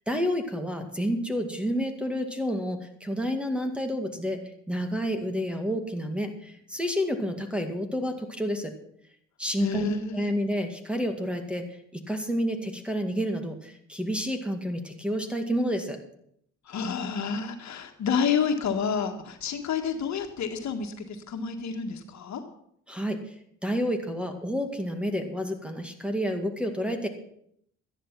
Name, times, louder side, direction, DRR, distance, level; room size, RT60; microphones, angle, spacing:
voice 1, 0.1-4.4 4.7-8.7 9.4-11.7 11.9-16.0 22.9-23.3 23.6-27.1, equal, 5° right, 5 dB, 2.1 m, -29 dB
voice 2, 9.6-10.3 16.7-22.4, left 6 dB, 65° left, 5 dB, 1.7 m, -29 dB
13.0 x 10.5 x 6.0 m, 0.70 s
cardioid pair, 90°, 30 cm